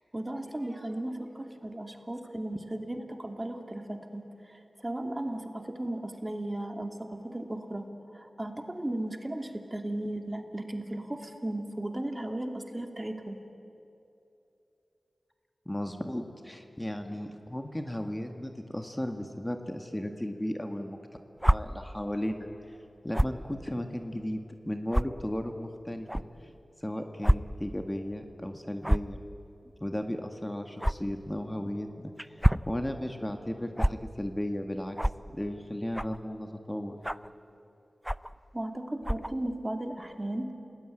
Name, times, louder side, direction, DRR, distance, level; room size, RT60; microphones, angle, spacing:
voice 1, 0.1-7.9 8.1-13.4 38.5-40.5, right 1 dB, 25° right, 5 dB, 2.5 m, -36 dB
voice 2, 15.7-21.0 21.5-22.5 23.0-26.2 26.8-29.2 29.8-35.0 35.3-37.0, left 1 dB, 15° left, 5 dB, 2.0 m, -35 dB
sound 1, 21.4-21.6 23.1-23.4 24.1-24.2 24.9-25.0 26.1-26.2 27.2-27.4 27.7-27.8 28.8-29.1 30.8-30.9 32.2-32.7 33.8-33.9 35.0-35.2 35.9-36.2 37.0-37.3 38.0-38.3 39.0-39.3, equal, 5° right, 0.5 m, -25 dB
28.5 x 19.5 x 9.2 m, 2.9 s
cardioid pair, 40°, 0 cm